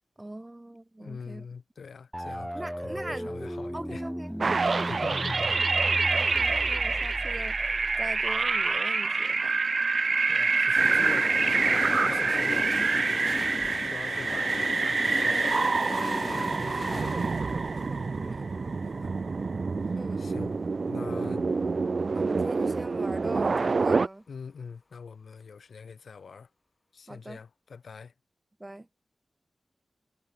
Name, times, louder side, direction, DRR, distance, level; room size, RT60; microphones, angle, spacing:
voice 1, 0.2-1.5 2.5-3.3 3.7-5.4 6.1-7.6 8.0-9.6 18.2-18.5 19.9-20.2 22.1-24.3 27.1-27.4 28.6-28.9, right 1 dB, 20° right, 5.4 m, -41 dB
voice 2, 1.0-4.1 4.8-5.8 10.3-13.2 13.8-15.8 16.1-17.2 18.8-19.1 19.8-20.5 20.9-21.5 24.3-26.5 26.9-28.1, left 5 dB, 85° left, 4.0 m, -44 dB
sound 1, 2.1-8.8, equal, ahead, 1.1 m, -36 dB
sound 2, 4.4-24.1, right 4 dB, 60° right, 1.2 m, -27 dB
sound 3, 10.8-20.6 20.9-21.0, left 3 dB, 50° left, 1.1 m, -37 dB
wide cardioid pair, 65°, 0 cm